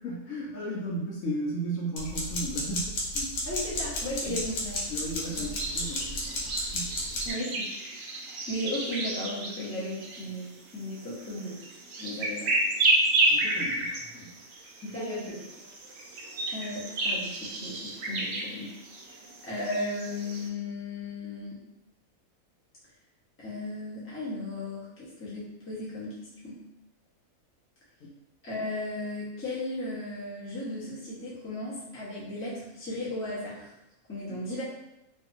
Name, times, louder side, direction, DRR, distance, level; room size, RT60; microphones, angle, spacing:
voice 1, 0.0-3.4 4.3-4.5 4.9-7.0 13.3-14.4 28.0-28.1 34.3-34.4, right 1 dB, 70° left, -3 dB, 0.9 m, -35 dB
sound 1, 2.0-7.3, left 1 dB, 85° left, 1.2 m, -32 dB
voice 2, 3.4-4.8 7.2-11.6 12.0-12.5 14.8-15.5 16.5-18.7 19.4-21.6 23.4-26.6 28.4-33.7 34.1-34.6, left 1 dB, 15° left, -7 dB, 0.5 m, -36 dB
sound 2, 4.0-20.5, right 2 dB, 65° right, 0.8 m, -32 dB
2.7 x 2.4 x 2.4 m, 0.90 s
omnidirectional pair, 1.5 m